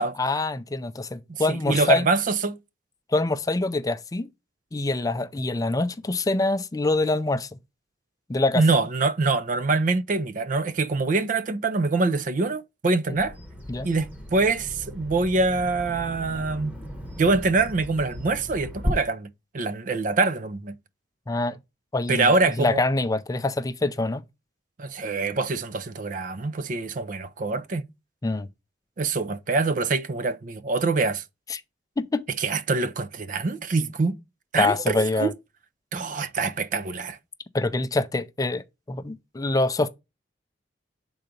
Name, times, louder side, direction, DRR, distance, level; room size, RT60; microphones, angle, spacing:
voice 1, 0.2-2.1 3.1-4.3 4.7-7.5 8.3-8.6 13.1-13.2 13.7-13.9 21.3-21.6 21.9-22.3 22.6-24.2 28.2-28.5 31.5-31.6 32.0-32.2 34.6-35.3 37.5-38.6 38.9-39.9, left 2 dB, 20° left, 0.4 m, -25 dB
voice 2, 1.3-2.6 8.6-13.3 13.8-16.8 17.2-19.3 19.5-20.7 22.1-22.8 24.8-27.9 29.0-31.2 32.4-34.2 34.5-35.3 35.9-37.2, right 3 dB, 50° right, 0.5 m, -24 dB
Bird vocalization bird call bird song, 13.2-18.9, left 1 dB, 10° right, 1.1 m, -36 dB
5.7 x 3.9 x 5.1 m
head